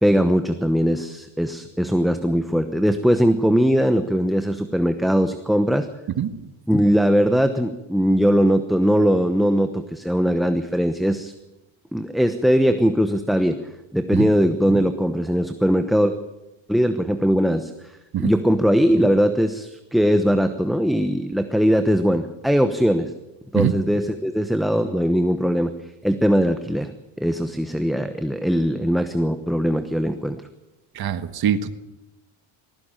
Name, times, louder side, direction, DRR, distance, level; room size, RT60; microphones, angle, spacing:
voice 1, 0.0-5.9 6.7-11.3 11.9-13.6 13.9-16.1 16.7-23.1 23.5-25.7 26.0-26.9 27.2-30.4, equal, ahead, 8 dB, 1.0 m, -20 dB
voice 2, 6.2-6.5 14.2-14.3 18.1-18.3 23.5-23.7 30.9-31.7, right 9 dB, 50° right, 11 dB, 1.6 m, -23 dB
19.5 x 16.0 x 9.0 m, 0.98 s
cardioid pair, 125°, 49 cm